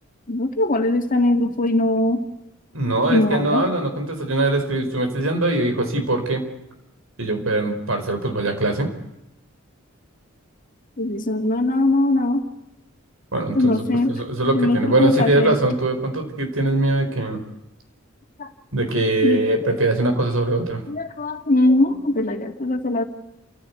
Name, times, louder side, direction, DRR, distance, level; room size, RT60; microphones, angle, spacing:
voice 1, 0.3-2.2 3.1-3.6 11.0-12.5 13.5-14.2 14.5-15.6 18.4-18.5 19.2-19.8 20.9-23.0, left 2 dB, 40° left, 5 dB, 2.2 m, -21 dB
voice 2, 2.7-6.4 7.2-8.9 13.3-13.7 14.1-17.4 18.7-20.8, right 2 dB, 85° right, 5 dB, 4.7 m, -22 dB
29.0 x 15.0 x 8.4 m, 0.93 s
head